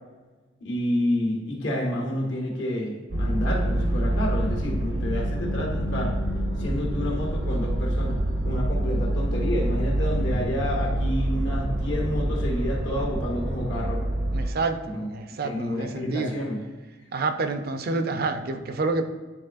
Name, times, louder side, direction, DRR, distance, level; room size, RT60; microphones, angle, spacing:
voice 1, 0.6-6.2 6.6-8.2 8.4-14.0 14.9-15.1 15.4-16.6, left 1 dB, 75° left, -2 dB, 1.7 m, -29 dB
sound 1, 3.1-14.5, right 1 dB, 75° right, 0.8 m, -26 dB
voice 2, 14.3-16.3 17.1-19.0, right 3 dB, 50° right, 8 dB, 0.5 m, -28 dB
10.0 x 4.1 x 2.5 m, 1.3 s
head